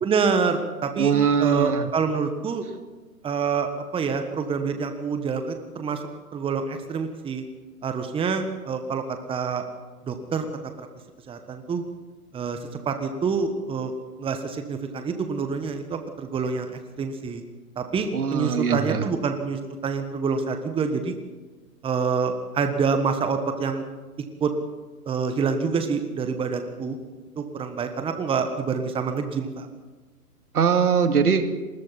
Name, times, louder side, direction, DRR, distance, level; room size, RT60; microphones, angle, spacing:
voice 1, 0.0-2.6 3.2-6.0 6.3-7.4 7.8-9.6 10.0-10.9 11.3-11.8 12.3-12.6 12.8-13.9 14.2-17.4 17.8-21.2 21.8-23.8 24.4-24.5 25.0-27.0 27.4-29.7, right 5 dB, 10° right, 7 dB, 1.4 m, -27 dB
voice 2, 1.0-1.9 18.1-19.0 30.5-31.5, right 6 dB, 70° right, 7 dB, 2.3 m, -21 dB
30.0 x 21.0 x 4.2 m, 1.3 s
figure-of-eight pair, 120°, 46 cm